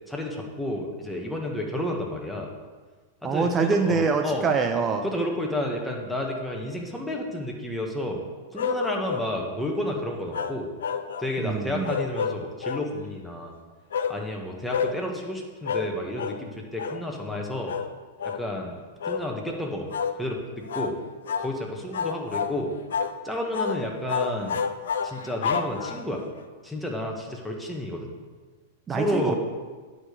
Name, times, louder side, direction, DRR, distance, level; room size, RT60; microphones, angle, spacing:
voice 1, 0.1-2.5 3.2-4.5 5.1-8.2 8.5-10.7 11.2-13.5 14.1-17.8 18.4-19.9 20.1-20.4 20.7-20.9 21.4-22.7 23.2-24.6 25.0-26.2 26.6-28.1 28.9-29.4, left 1 dB, ahead, -1 dB, 1.7 m, -31 dB
voice 2, 3.2-5.0 11.4-11.9 28.9-29.3, right 4 dB, 25° right, 5 dB, 0.8 m, -24 dB
sound 1, 8.6-9.3 10.3-11.4 11.8-12.9 13.9-14.2 14.7-15.0 15.7-15.9 16.2-16.4 16.8-17.0 17.7-17.9 18.2-18.5 19.0-19.3 19.9-20.2 20.7-21.0 21.3-21.5 21.9-22.6 22.9-23.2 23.5-23.8 24.1-26.2, left 6 dB, 70° left, 0.5 m, -29 dB
9.5 x 5.2 x 6.7 m, 1.4 s
hypercardioid pair, 100°, 0 cm